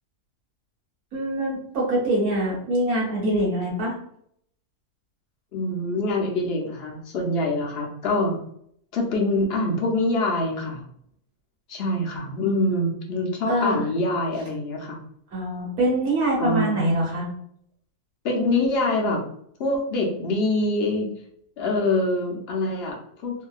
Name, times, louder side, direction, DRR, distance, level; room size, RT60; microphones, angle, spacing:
voice 1, 1.1-3.9 13.5-13.8 15.3-17.3, right 1 dB, 80° right, -4 dB, 1.7 m, -24 dB
voice 2, 5.5-8.4 8.9-10.9 11.7-15.0 16.4-16.8 18.2-19.3 19.6-21.1 21.6-23.3, left 2 dB, 55° left, 0 dB, 0.8 m, -25 dB
3.1 x 2.7 x 2.3 m, 0.67 s
omnidirectional pair, 1.6 m